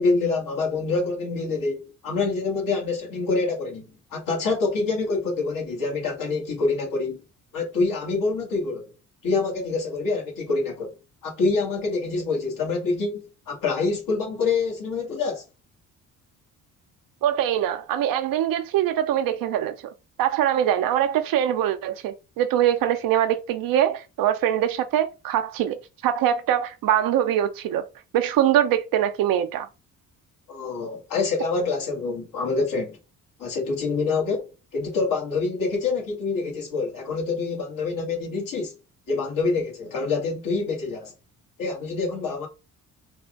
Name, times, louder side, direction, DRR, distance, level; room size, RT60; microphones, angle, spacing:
voice 1, 0.0-7.2 7.5-8.9 9.2-10.9 11.2-15.4 30.5-33.0 33.4-38.7 39.1-41.1 41.6-42.5, left 3 dB, 75° left, 2.0 m, -26 dB
voice 2, 17.2-19.8 20.2-27.9 28.1-29.7, right 10 dB, 80° right, 0.7 m, -23 dB
4.2 x 2.5 x 3.7 m
cardioid pair, 80°, 34 cm